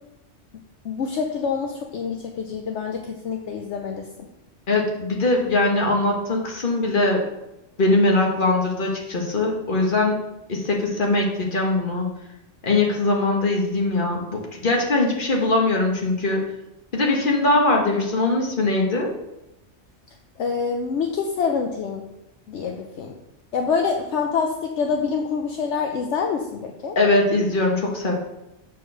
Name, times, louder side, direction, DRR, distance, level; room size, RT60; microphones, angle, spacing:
voice 1, 0.8-4.1 20.4-22.0 22.5-23.1 23.5-27.0, left 5 dB, 70° left, 3 dB, 1.0 m, -26 dB
voice 2, 4.7-7.2 7.8-10.2 10.5-12.1 12.6-16.4 16.9-19.1 26.9-28.1, left 2 dB, 45° left, -1 dB, 1.5 m, -21 dB
6.6 x 4.5 x 6.3 m, 0.92 s
omnidirectional pair, 1.3 m